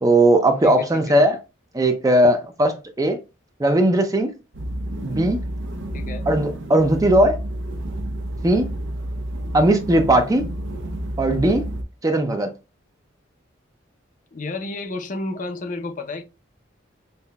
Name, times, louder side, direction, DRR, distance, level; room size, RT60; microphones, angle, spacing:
voice 1, 0.0-1.4 1.7-3.2 3.6-4.3 5.0-5.4 6.3-7.4 8.4-8.7 9.5-10.4 11.2-11.7 12.0-12.5, right 1 dB, 15° right, 0.4 m, -18 dB
voice 2, 0.6-1.2 5.9-6.2 14.3-16.2, left 2 dB, 40° left, 0.5 m, -31 dB
sound 1, 4.5-11.8, right 1 dB, 65° right, 0.6 m, -30 dB
5.4 x 2.2 x 2.2 m
head